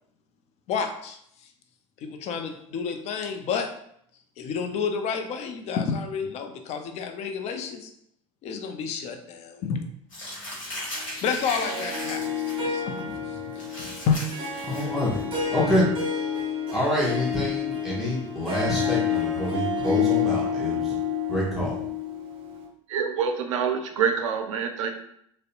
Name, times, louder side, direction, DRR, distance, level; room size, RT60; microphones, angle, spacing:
voice 1, 0.7-1.5 2.0-3.7 4.4-7.9 8.4-9.8 11.2-12.3 12.6-14.2, left 6 dB, 40° left, 6 dB, 0.4 m, -30 dB
Crumpling crinkling, 10.1-12.6 13.0-13.1 13.5-15.2, left 1 dB, 85° left, 1.0 m, -37 dB
Harp, 11.5-22.7, left 6 dB, 35° right, 0.6 m, -29 dB
voice 2, 14.7-15.3 15.5-15.9 16.7-21.0 21.3-21.8, left 1 dB, ahead, -7 dB, 0.8 m, -26 dB
voice 3, 22.9-24.9, right 7 dB, 75° right, 5 dB, 0.4 m, -26 dB
2.6 x 2.1 x 2.5 m, 0.71 s
hypercardioid pair, 75°, 16 cm